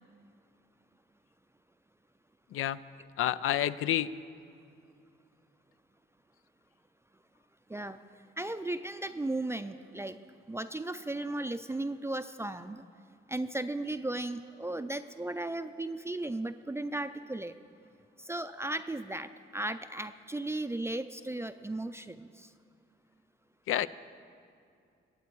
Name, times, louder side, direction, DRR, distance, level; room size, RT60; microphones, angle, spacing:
voice 1, 3.2-4.1 23.7-23.9, left 12 dB, 90° left, 15 dB, 0.4 m, -28 dB
voice 2, 8.4-10.2 10.5-12.8 13.3-17.5 18.2-22.5, right 2 dB, 10° right, 9 dB, 0.4 m, -36 dB
23.0 x 8.2 x 4.6 m, 2.4 s
cardioid pair, 80°, 21 cm